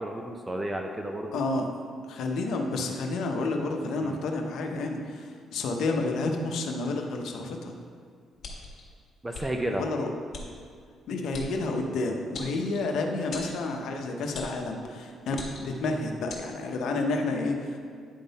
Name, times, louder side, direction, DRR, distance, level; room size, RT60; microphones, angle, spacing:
voice 1, 0.0-1.4 4.0-4.2 9.2-9.9, right 1 dB, 15° right, 3 dB, 0.5 m, -32 dB
voice 2, 1.3-1.7 2.1-7.7 9.7-10.1 11.1-17.8, left 2 dB, 75° left, 3 dB, 0.8 m, -30 dB
sound 1, 8.4-8.8 9.3-9.5 10.3-10.5 11.3-11.5 12.3-12.9 13.3-13.6 14.3-14.6 15.3-15.8 16.3-16.4, left 3 dB, 55° left, 1.6 m, -39 dB
10.0 x 3.8 x 4.1 m, 2.1 s
cardioid pair, 90°, 0 cm